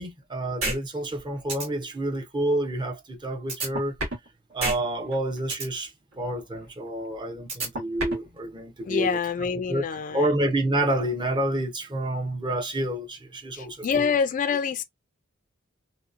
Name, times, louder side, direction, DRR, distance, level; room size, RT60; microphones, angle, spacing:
voice 1, 0.0-3.9 4.5-14.1, right 1 dB, 20° right, 0.6 m, -29 dB
sound 1, 0.6-0.8 1.1-1.2 1.5-1.7 3.5-4.3 4.6-4.8 5.1-5.7 7.5-8.3, right 2 dB, 70° right, 1.2 m, -28 dB
voice 2, 8.9-10.3 13.5-14.8, left 6 dB, 40° left, 0.3 m, -26 dB
2.8 x 2.0 x 2.4 m
head